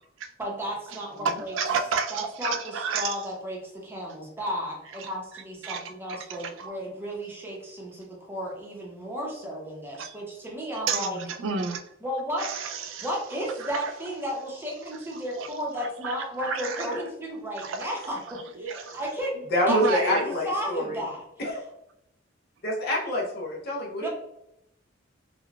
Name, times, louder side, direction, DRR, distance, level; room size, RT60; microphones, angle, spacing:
voice 1, 0.4-1.5 2.1-11.3 12.0-12.5 13.0-19.3 19.7-21.2 24.0-24.1, equal, 10° right, -2 dB, 0.7 m, -33 dB
voice 2, 1.2-3.2 5.0-5.1 5.6-5.8 6.1-6.8 10.0-10.1 10.9-11.1 11.4-11.8 12.4-13.1 13.6-13.9 15.1-15.5 15.8-17.1 17.6-17.9 18.6-19.0 19.7-20.3, right 5 dB, 80° right, 6 dB, 0.4 m, -31 dB
voice 3, 19.5-21.0 21.4-21.6 22.6-24.1, left 1 dB, 55° left, -2 dB, 0.7 m, -26 dB
3.7 x 2.2 x 2.3 m, 0.80 s
head